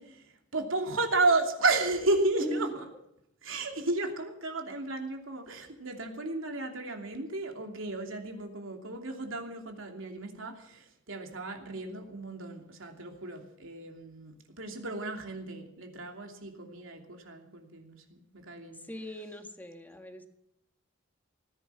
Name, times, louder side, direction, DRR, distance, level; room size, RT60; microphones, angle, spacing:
voice 1, 0.0-2.8 3.4-18.8, right 2 dB, 90° right, 3 dB, 2.9 m, -33 dB
voice 2, 2.4-2.7 18.7-20.3, equal, 10° left, 5 dB, 1.7 m, -38 dB
18.0 x 10.5 x 7.1 m, 0.80 s
head